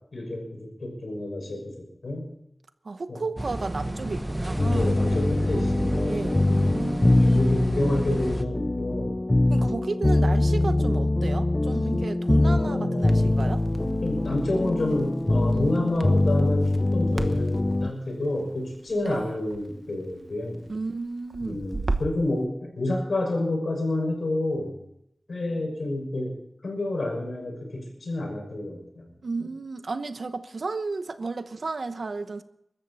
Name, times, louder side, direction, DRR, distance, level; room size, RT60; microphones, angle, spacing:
voice 1, 0.1-2.3 3.1-3.2 4.7-6.4 7.3-9.2 12.4-20.7 21.4-24.8 25.3-26.4 26.6-29.1, left 1 dB, 85° left, 6.0 m, -29 dB
voice 2, 2.8-5.0 6.1-7.5 9.5-13.6 19.0-19.4 20.7-21.7 29.2-32.4, right 3 dB, 80° right, 0.9 m, -33 dB
sound 1, 3.4-8.4, right 1 dB, 15° right, 0.7 m, -32 dB
sound 2, 4.6-17.9, left 2 dB, 25° left, 0.5 m, -23 dB
Crackle, 13.0-22.3, right 3 dB, 55° right, 1.2 m, -38 dB
23.0 x 13.0 x 4.2 m
wide cardioid pair, 75°, 0 cm